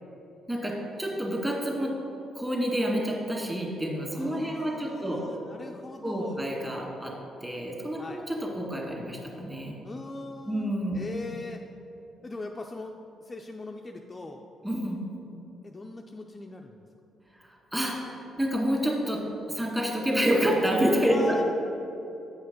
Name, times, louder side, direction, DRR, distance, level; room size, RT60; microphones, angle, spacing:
voice 1, 0.5-1.9 2.4-5.2 6.0-7.1 7.4-9.8 10.5-11.0 14.6-15.0 17.7-18.0 18.4-19.2 19.5-21.2, equal, 15° right, -2 dB, 2.0 m, -28 dB
voice 2, 4.1-6.4 8.0-8.2 9.8-11.6 12.2-13.0 13.2-14.4 15.6-16.8 21.1-21.4, left 2 dB, 25° left, 2 dB, 0.4 m, -40 dB
8.2 x 5.6 x 5.2 m, 2.9 s
cardioid pair, 90°, 0 cm